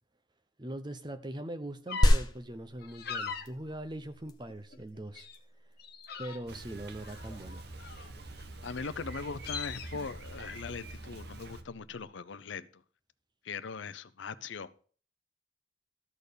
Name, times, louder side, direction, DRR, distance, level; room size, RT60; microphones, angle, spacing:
voice 1, 0.6-5.3 6.2-7.7, right 1 dB, 20° right, 0.7 m, -41 dB
sound 1, 1.9-2.1 2.8-3.4 4.0-4.8 5.1-5.4 5.8-6.6 7.0-8.2 8.8-8.9 9.1-9.9, left 6 dB, 50° left, 1.1 m, -41 dB
sound 2, 2.0-12.0, equal, 20° left, 1.0 m, -34 dB
Bicycle, 6.5-11.6, right 2 dB, 50° right, 1.0 m, -45 dB
voice 2, 8.6-12.8 13.4-14.7, left 5 dB, 65° left, 0.6 m, -40 dB
13.5 x 4.4 x 6.8 m
head